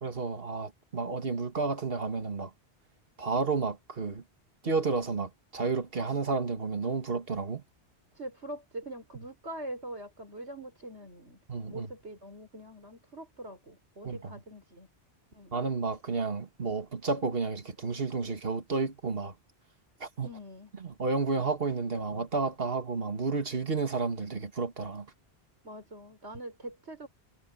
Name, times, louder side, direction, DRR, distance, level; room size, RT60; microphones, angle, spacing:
voice 1, 0.0-2.5 3.2-4.2 4.6-7.6 11.5-11.9 14.0-14.4 15.5-19.3 20.0-20.3 20.8-25.1, right 4 dB, 60° right, 2.2 m, -31 dB
voice 2, 8.1-11.4 11.7-14.9 15.3-15.5 20.2-20.7 25.6-27.1, right 1 dB, 80° right, 6.0 m, -43 dB
omnidirectional pair, 1.1 m